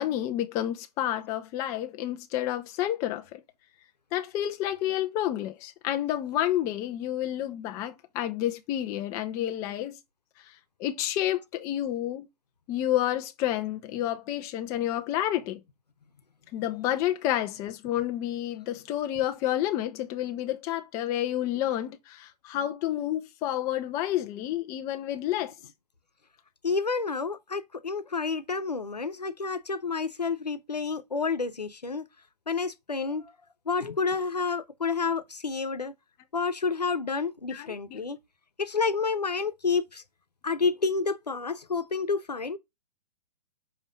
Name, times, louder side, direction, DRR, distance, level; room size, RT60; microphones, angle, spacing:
voice 1, 0.0-3.4 4.1-10.0 10.8-12.3 12.7-15.6 16.5-25.5 37.5-38.0, left 12 dB, 15° left, 0.3 m, -30 dB
voice 2, 26.6-32.1 32.5-33.3 33.7-35.9 36.3-38.2 38.6-40.0 40.4-42.6, left 4 dB, 80° left, 0.9 m, -29 dB
5.9 x 3.1 x 5.2 m
figure-of-eight pair, 115°, 21 cm